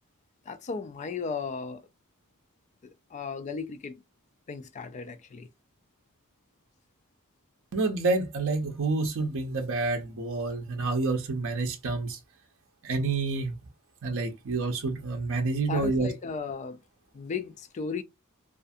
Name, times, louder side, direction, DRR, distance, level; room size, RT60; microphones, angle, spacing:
voice 1, 0.5-1.9 2.8-3.9 4.5-5.5 15.6-16.8 17.1-18.0, left 5 dB, 30° left, 0.3 m, -35 dB
voice 2, 7.7-12.2 12.8-13.5 14.0-16.1, right 3 dB, 60° right, 0.6 m, -28 dB
2.5 x 2.4 x 2.5 m
head